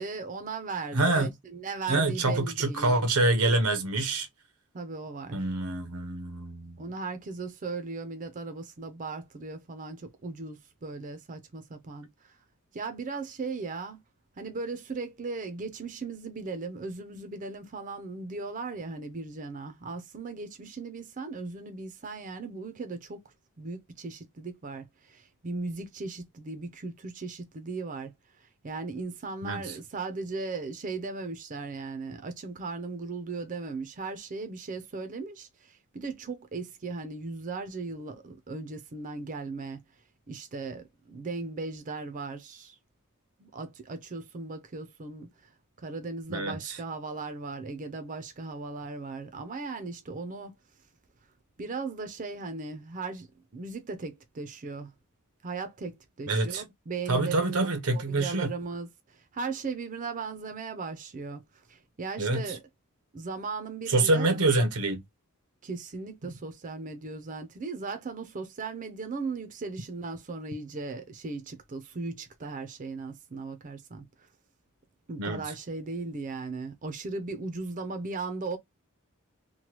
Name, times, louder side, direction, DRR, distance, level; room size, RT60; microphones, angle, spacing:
voice 1, 0.0-3.1 4.7-5.4 6.8-12.4 12.7-14.0 14.4-23.3 23.6-28.1 28.4-39.8 40.3-42.8 43.4-45.3 45.8-50.6 51.6-53.3 53.5-54.9 55.4-57.6 57.9-62.6 63.1-64.4 65.6-74.3 75.1-78.6, right 3 dB, 35° right, 0.5 m, -37 dB
voice 2, 0.9-1.3 1.9-4.3 5.3-6.8 29.4-29.6 46.3-46.8 56.3-56.6 57.1-58.5 62.2-62.4 63.9-65.0 66.2-66.3 75.2-75.4, right 2 dB, 90° right, 0.8 m, -26 dB
3.0 x 2.2 x 2.9 m
head